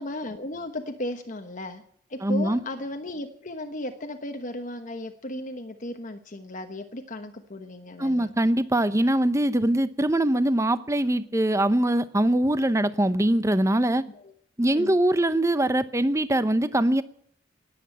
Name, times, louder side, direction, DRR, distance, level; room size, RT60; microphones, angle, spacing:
voice 1, 0.0-1.8 2.1-8.3 14.1-14.3 14.7-14.9, left 1 dB, 40° left, 1.2 m, -35 dB
voice 2, 2.2-2.6 8.0-14.0 14.6-17.0, right 1 dB, 15° right, 0.8 m, -22 dB
19.5 x 8.5 x 8.5 m
head